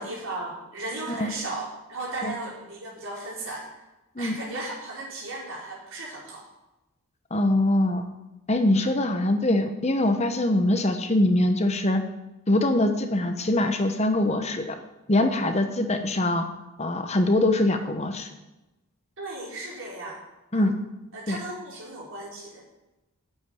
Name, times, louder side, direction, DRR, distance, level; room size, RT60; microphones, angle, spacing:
voice 1, 0.0-3.7 4.2-6.5 8.8-8.9 19.2-20.2 20.5-20.7 21.1-22.6, right 2 dB, 65° right, -4 dB, 4.7 m, -36 dB
voice 2, 7.3-8.0 8.5-12.0 12.5-14.7 15.1-16.4 16.8-18.3 20.5-20.7 21.3-21.4, left 1 dB, 30° left, 7 dB, 0.9 m, -23 dB
9.1 x 8.6 x 9.0 m, 1.0 s
head